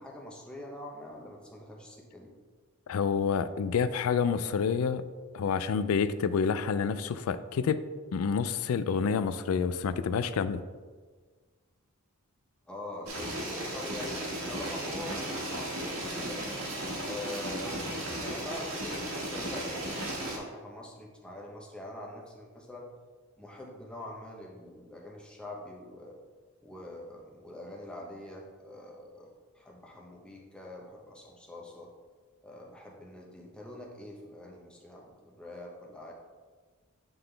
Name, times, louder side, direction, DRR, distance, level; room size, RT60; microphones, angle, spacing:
voice 1, 0.0-2.3 12.7-16.4 17.0-22.9 23.4-26.2 26.6-29.3 29.5-31.9 32.4-36.1, left 1 dB, 5° left, -2 dB, 0.9 m, -44 dB
voice 2, 2.9-5.0 5.3-7.8 8.1-10.6, left 6 dB, 75° left, 14 dB, 0.3 m, -28 dB
sound 1, 13.1-20.4, right 1 dB, 80° right, 1.5 m, -35 dB
8.8 x 3.8 x 3.3 m, 1.5 s
head